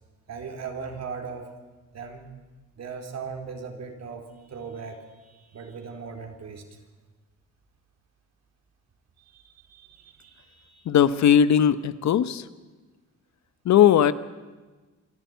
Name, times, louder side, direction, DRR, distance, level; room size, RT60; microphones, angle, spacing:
voice 1, 0.3-1.5 1.9-2.2 2.8-6.6 9.2-10.9, right 5 dB, 60° right, 3 dB, 3.9 m, -39 dB
voice 2, 10.9-12.4 13.6-14.1, left 9 dB, 65° left, 14 dB, 1.0 m, -18 dB
26.5 x 11.5 x 9.3 m, 1.3 s
cardioid pair, 90°, 30 cm